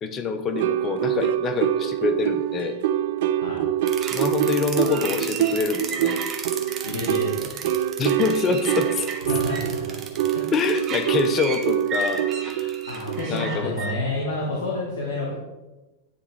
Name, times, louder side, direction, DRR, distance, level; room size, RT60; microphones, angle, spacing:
voice 1, 0.0-2.8 4.1-6.2 8.0-9.0 10.5-12.8 13.3-13.8, left 5 dB, 30° left, 9 dB, 0.6 m, -26 dB
sound 1, 0.5-13.5, right 11 dB, 65° right, 0.4 m, -25 dB
sound 2, 3.9-13.9, right 5 dB, 35° right, 0.9 m, -33 dB
voice 2, 6.8-7.5 9.2-10.0 10.3-10.5 12.9-15.4, left 2 dB, 70° left, -4 dB, 1.3 m, -29 dB
9.5 x 3.4 x 3.2 m, 1.1 s
hypercardioid pair, 100°, 0 cm